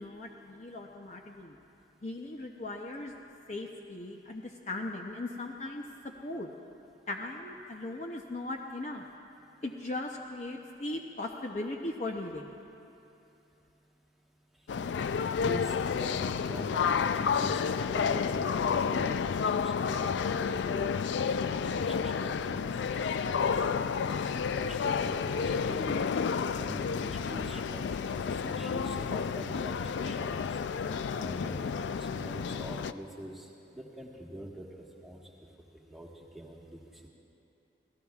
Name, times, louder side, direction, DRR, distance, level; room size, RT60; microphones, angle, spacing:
voice 1, 0.0-1.6 2.0-3.2 3.5-5.8 6.2-6.5 7.1-9.0 9.6-12.5, left 2 dB, 40° left, 1 dB, 0.6 m, -38 dB
sound 1, 14.7-32.9, left 6 dB, 70° left, 0.3 m, -30 dB
voice 2, 15.4-15.7 16.0-20.6 21.4-22.6 23.3-23.9 24.6-26.0 26.6-27.8 28.1-30.6 31.2-31.7 32.0-33.5 33.7-34.7 35.0-35.2 35.9-36.1 36.3-37.1, equal, ahead, -3 dB, 1.4 m, -43 dB
27.0 x 17.0 x 2.4 m, 2.9 s
head